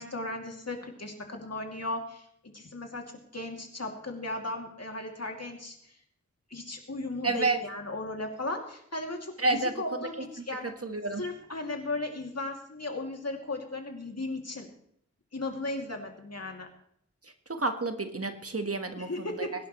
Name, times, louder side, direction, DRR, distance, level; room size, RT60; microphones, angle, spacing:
voice 1, 0.0-2.3 2.5-5.9 6.5-10.7 11.2-14.7 15.3-16.7 19.0-19.5, left 2 dB, 60° left, 3 dB, 2.6 m, -36 dB
voice 2, 7.2-7.6 9.4-9.7 10.0-10.1 10.6-11.2 17.5-19.5, right 3 dB, 50° right, 7 dB, 1.5 m, -30 dB
22.0 x 11.5 x 3.2 m, 0.68 s
wide cardioid pair, 60°, 29 cm